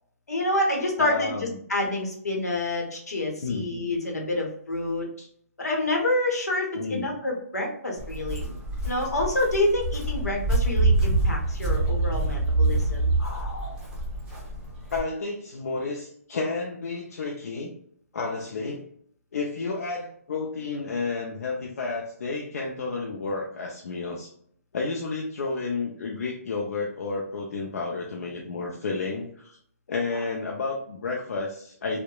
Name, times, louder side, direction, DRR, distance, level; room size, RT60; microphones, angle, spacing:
voice 1, 0.3-5.1 5.6-8.4 8.8-13.1, left 1 dB, 85° left, 1 dB, 0.9 m, -27 dB
voice 2, 1.0-1.6 3.4-3.7 5.2-5.3 6.7-7.2 8.4-8.6 13.2-13.9 14.9-17.7 18.1-18.8 19.3-24.3 24.7-29.6 29.9-32.0, left 4 dB, 65° left, -1 dB, 0.5 m, -31 dB
Walk footsteps, 8.0-15.0, right 2 dB, 10° right, 0.8 m, -26 dB
2.8 x 2.1 x 2.2 m, 0.64 s
hypercardioid pair, 140°, 8 cm